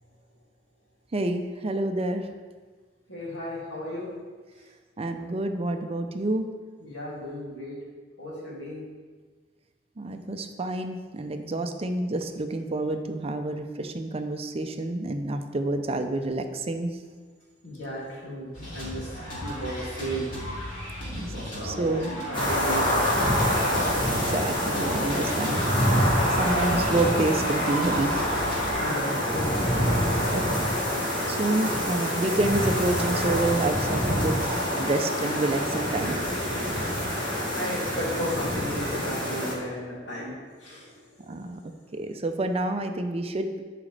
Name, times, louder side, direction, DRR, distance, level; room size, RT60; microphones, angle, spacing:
voice 1, 1.1-2.3 5.0-6.5 10.0-16.9 21.1-21.3 21.6-22.1 24.1-28.4 30.3-30.4 31.3-36.2 41.3-41.6 41.9-43.6, right 2 dB, 35° right, 7 dB, 0.5 m, -28 dB
voice 2, 3.1-4.1 6.8-7.8 8.2-8.8 17.6-19.1 19.4-20.3 21.3-23.4 28.8-29.6 37.6-40.3 40.6-41.3, equal, 80° left, -5 dB, 2.5 m, -34 dB
sound 1, 18.5-28.7, equal, 50° left, 2.5 m, -36 dB
sound 2, 22.3-39.5, equal, 30° left, 1.9 m, -26 dB
11.0 x 5.0 x 3.3 m, 1.4 s
head